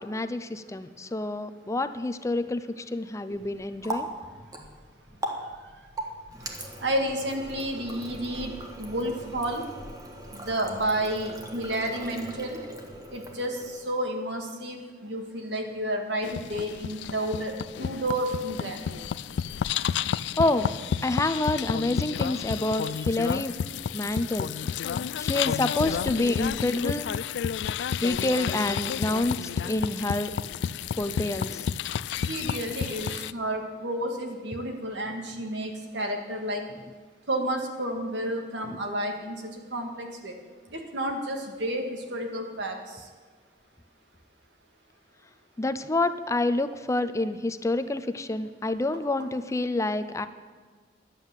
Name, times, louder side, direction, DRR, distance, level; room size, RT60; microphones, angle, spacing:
voice 1, 0.0-4.1 20.4-20.7 21.0-23.5 23.9-24.5 25.2-27.1 28.0-30.3 31.0-31.6 38.6-38.8 45.6-50.3, left 2 dB, 15° left, 11 dB, 0.5 m, -28 dB
Water tap faucet, 3.3-14.1, right 1 dB, 20° right, 1.4 m, -40 dB
voice 2, 6.8-9.7 10.3-12.6 13.1-18.8 22.8-23.0 32.3-36.7 37.3-39.4 39.7-40.3 40.7-42.8, right 1 dB, 85° right, 3 dB, 2.0 m, -31 dB
sound 1, 16.2-33.3, left 7 dB, 75° left, 0.3 m, -31 dB
11.5 x 9.1 x 7.3 m, 1.5 s
head